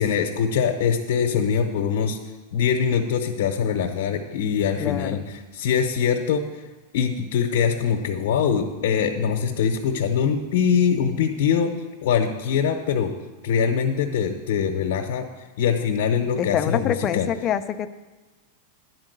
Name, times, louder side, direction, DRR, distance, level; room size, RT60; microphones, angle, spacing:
voice 1, 0.0-2.2 2.5-5.2 5.5-6.4 6.9-11.7 12.0-13.1 13.4-15.3 15.6-17.3, left 7 dB, 65° left, 3 dB, 0.8 m, -23 dB
voice 2, 4.8-5.3 16.4-17.9, left 9 dB, 25° left, 9 dB, 0.4 m, -25 dB
10.5 x 4.5 x 7.9 m, 1.2 s
supercardioid pair, 170°, 0 cm